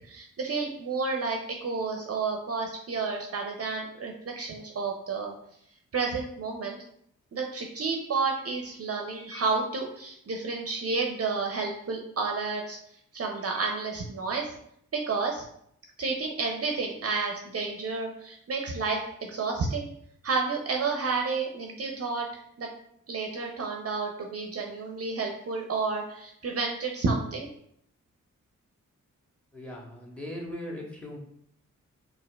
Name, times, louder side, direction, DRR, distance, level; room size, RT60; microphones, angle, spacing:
voice 1, 0.1-5.3 5.9-6.8 7.3-12.8 13.1-14.5 14.9-15.4 16.0-19.9 20.2-22.3 22.6-22.7 23.1-27.5, right 4 dB, 45° right, 1 dB, 0.6 m, -30 dB
voice 2, 29.5-31.2, left 1 dB, 5° left, -1 dB, 1.2 m, -39 dB
4.2 x 2.4 x 2.3 m, 0.70 s
cardioid pair, 50°, 32 cm